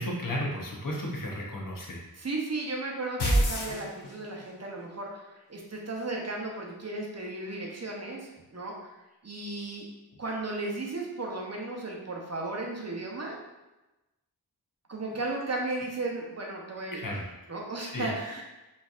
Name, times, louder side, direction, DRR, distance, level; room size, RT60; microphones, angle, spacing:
voice 1, 0.0-2.0 16.9-17.2 17.9-18.1, left 1 dB, 55° left, -2 dB, 0.9 m, -33 dB
voice 2, 2.2-8.9 9.2-9.8 10.2-13.4 14.9-18.4, right 2 dB, 40° right, -1 dB, 0.7 m, -35 dB
sound 1, 3.2-4.5, equal, 85° left, 0.8 m, -26 dB
4.1 x 2.6 x 2.5 m, 1.0 s
wide cardioid pair, 45°, 38 cm